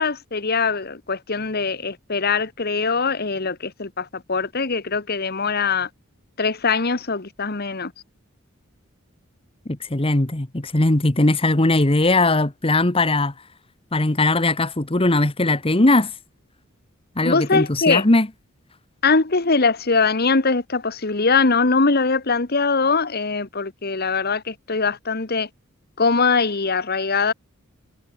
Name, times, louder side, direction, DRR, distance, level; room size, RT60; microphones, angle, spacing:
voice 1, 0.0-5.9 6.4-7.9 17.2-18.0 19.0-25.5 26.0-27.3, left 4 dB, 50° left, 1.4 m, -22 dB
voice 2, 9.6-13.3 13.9-16.1 17.2-18.3, left 2 dB, 25° left, 1.3 m, -19 dB
head